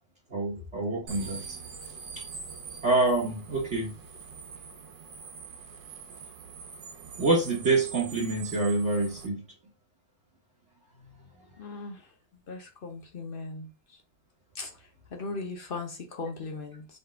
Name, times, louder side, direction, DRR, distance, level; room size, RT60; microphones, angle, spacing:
voice 1, 0.3-1.6 2.2-2.3 2.8-3.9 7.2-9.4, right 3 dB, 45° right, 1.2 m, -26 dB
sound 1, 1.1-9.3, right 5 dB, 70° right, 1.6 m, -44 dB
voice 2, 11.6-12.1 12.5-14.0 14.5-17.0, left 3 dB, 85° left, 0.4 m, -39 dB
4.1 x 3.4 x 3.5 m
omnidirectional pair, 2.0 m